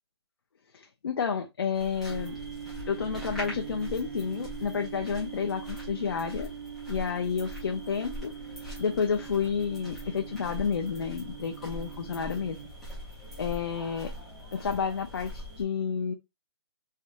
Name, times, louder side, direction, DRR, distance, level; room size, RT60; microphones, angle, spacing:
voice 1, 0.7-2.3 2.9-6.5 6.9-8.3 8.8-12.6 13.4-14.1 14.5-16.1, left 6 dB, 55° left, 0.5 m, -30 dB
sound 1, 1.7-15.6, left 1 dB, ahead, 0.6 m, -43 dB
sound 2, 2.1-12.7, right 8 dB, 60° right, 0.8 m, -42 dB
3.3 x 2.9 x 2.4 m
hypercardioid pair, 175°, 14 cm